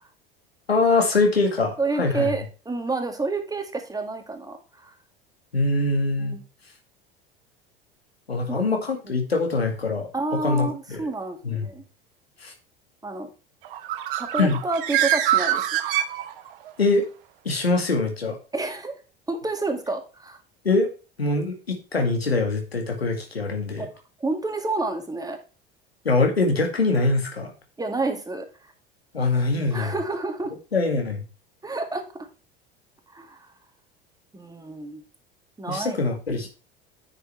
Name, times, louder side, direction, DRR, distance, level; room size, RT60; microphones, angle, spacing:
voice 1, 0.7-2.3 5.5-6.4 8.3-10.1 10.4-11.1 11.4-11.7 12.4-12.5 14.4-14.6 16.8-17.1 17.4-18.4 20.6-20.9 21.2-23.9 26.0-27.5 29.1-29.9 30.7-31.2 35.7-36.5, left 3 dB, 85° left, 3 dB, 2.1 m, -23 dB
voice 2, 1.8-4.9 6.2-6.4 8.5-8.7 10.1-11.8 13.0-13.3 14.2-15.7 18.5-18.9 19.3-20.4 23.8-23.9 24.2-25.4 27.8-28.5 29.7-30.5 31.6-32.3 33.1-33.5 34.3-35.0 35.6-36.0, right 3 dB, 10° right, 5 dB, 2.1 m, -29 dB
Bird, 13.6-16.7, right 12 dB, 60° right, 1.2 m, -25 dB
10.0 x 6.5 x 3.2 m, 0.32 s
figure-of-eight pair, 75°, 30 cm